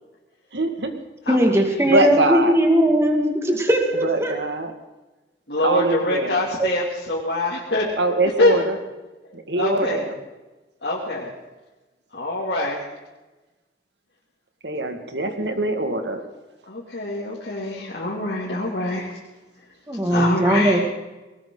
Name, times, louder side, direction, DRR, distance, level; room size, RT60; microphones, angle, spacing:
voice 1, 0.5-0.9 1.8-2.5 4.0-4.7 5.6-6.4 8.0-8.8 9.3-10.2 14.6-16.2, right 2 dB, 80° right, 6 dB, 1.9 m, -23 dB
voice 2, 1.3-4.3 6.6-6.7 19.9-20.8, equal, 15° right, 2 dB, 2.2 m, -19 dB
voice 3, 5.5-7.9 8.4-8.5 9.5-10.0 10.8-11.3 12.1-12.8 16.7-19.1 20.1-20.8, left 1 dB, 70° left, -5 dB, 2.7 m, -24 dB
19.5 x 19.0 x 3.9 m, 1.1 s
head